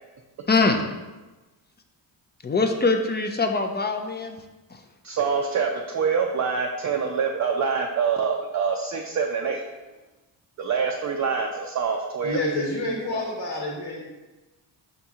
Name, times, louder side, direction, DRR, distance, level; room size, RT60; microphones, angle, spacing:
voice 1, 0.5-0.8 2.4-4.4 4.7-4.8 13.1-13.2, left 3 dB, 25° left, 5 dB, 0.3 m, -23 dB
voice 2, 5.0-9.6 10.6-12.4, right 6 dB, 40° right, 1 dB, 0.4 m, -25 dB
voice 3, 12.2-14.0, left 1 dB, 65° left, -2 dB, 1.1 m, -28 dB
5.2 x 2.9 x 3.5 m, 1.1 s
cardioid pair, 95°, 46 cm